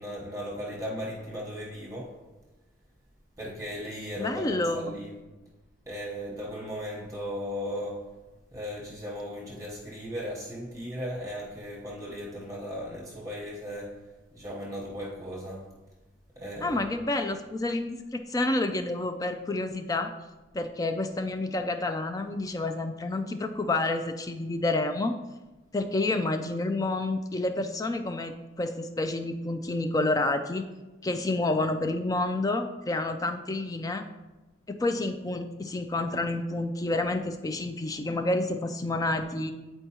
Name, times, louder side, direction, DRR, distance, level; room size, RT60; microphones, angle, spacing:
voice 1, 0.0-2.2 3.4-5.2 5.9-8.0 8.5-15.7 16.4-16.9, equal, 15° right, 1.0 m, -37 dB
voice 2, 4.2-4.9 16.6-20.1 20.5-25.2 25.7-30.6 31.0-34.0 34.7-39.5, left 2 dB, 20° left, 0.3 m, -29 dB
9.0 x 4.5 x 2.9 m
head